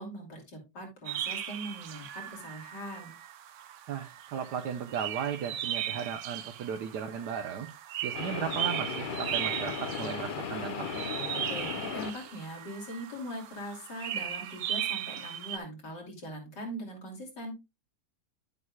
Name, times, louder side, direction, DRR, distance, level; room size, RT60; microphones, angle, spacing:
voice 1, 0.0-3.1 11.3-17.5, equal, 85° left, 1 dB, 3.4 m, -41 dB
sound 1, 1.0-15.6, right 11 dB, 65° right, 0.7 m, -37 dB
voice 2, 3.9-7.7 8.0-11.0, right 7 dB, 80° right, 5 dB, 1.4 m, -36 dB
sound 2, 8.1-12.4, left 6 dB, 60° left, 0.5 m, -36 dB
11.0 x 7.6 x 2.3 m, 0.23 s
omnidirectional pair, 1.8 m